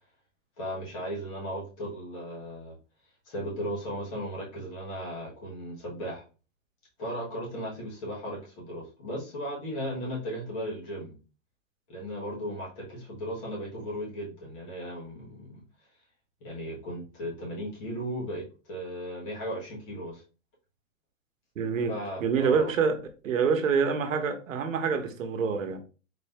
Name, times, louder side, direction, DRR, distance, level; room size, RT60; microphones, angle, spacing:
voice 1, 0.6-2.8 3.2-6.2 7.0-11.1 11.9-15.6 16.4-20.2 21.9-22.7, equal, 25° left, 1.3 m, -36 dB
voice 2, 21.6-21.9 22.2-23.0 23.2-25.8, right 6 dB, 85° right, 1.0 m, -26 dB
4.1 x 2.7 x 3.3 m
hypercardioid pair, 175°, 39 cm